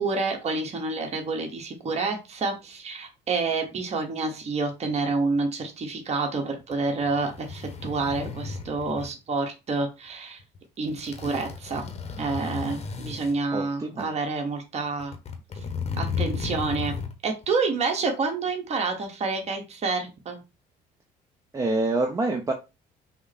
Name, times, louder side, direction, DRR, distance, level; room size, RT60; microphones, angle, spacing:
voice 1, 0.0-10.4 10.8-11.9 12.2-15.1 16.0-17.0 17.2-20.4, right 3 dB, 40° right, 2 dB, 1.3 m, -28 dB
sound 1, 6.6-9.1 10.4-10.6 10.8-13.4 14.0-14.1 14.9-17.2 17.4-17.5, left 5 dB, 40° left, 1.0 m, -34 dB
voice 2, 13.5-14.1 21.5-22.5, right 2 dB, 20° right, 2 dB, 0.8 m, -26 dB
5.9 x 2.1 x 4.2 m, 0.26 s
cardioid pair, 110°, 17 cm